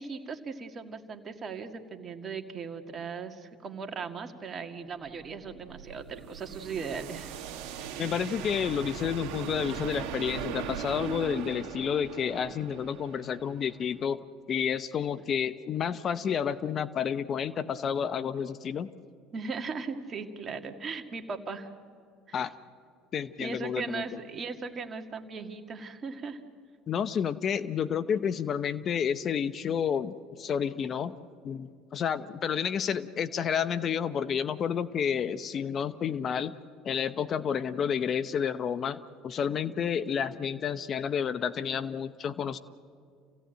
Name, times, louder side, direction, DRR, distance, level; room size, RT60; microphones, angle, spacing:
voice 1, 0.0-7.4 19.3-21.7 22.3-22.4 23.4-26.4, right 5 dB, 40° right, 6 dB, 2.1 m, -38 dB
sound 1, 5.1-14.0, right 8 dB, 70° right, 1.6 m, -39 dB
voice 2, 8.0-14.2 14.5-18.9 22.3-22.5 23.1-24.0 26.9-31.2 31.4-36.6 36.8-42.6, left 7 dB, 45° left, 14 dB, 0.8 m, -30 dB
28.5 x 16.5 x 9.1 m, 2.3 s
hypercardioid pair, 80°, 0 cm